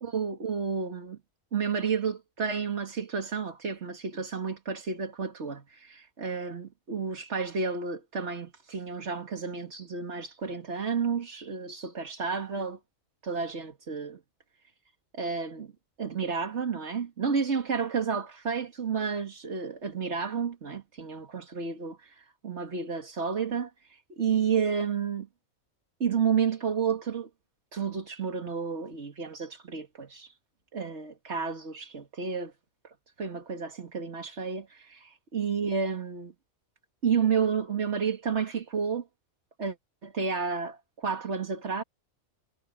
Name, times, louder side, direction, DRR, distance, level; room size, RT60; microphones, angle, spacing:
voice 1, 0.0-1.2 1.5-12.8 13.2-14.2 15.1-15.7 16.0-25.3 26.0-27.3 27.7-30.4 30.7-32.5 32.8-36.3 37.0-39.0 39.6-39.8 40.0-41.8, right 6 dB, 55° right, 2.2 m, -31 dB
omnidirectional pair, 1.4 m